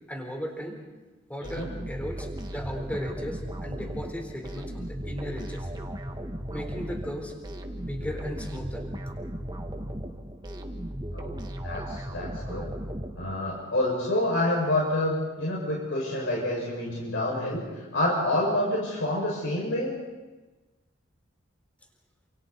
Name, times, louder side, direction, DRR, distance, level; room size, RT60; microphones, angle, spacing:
voice 1, 0.1-0.8 1.3-5.7 6.5-7.4 7.8-8.9, equal, 10° left, 2 dB, 4.1 m, -36 dB
sound 1, 1.4-13.6, right 1 dB, 20° right, 1.8 m, -36 dB
voice 2, 11.6-12.7 13.2-20.0, left 1 dB, 70° left, -4 dB, 6.2 m, -28 dB
29.0 x 27.5 x 4.2 m, 1.2 s
head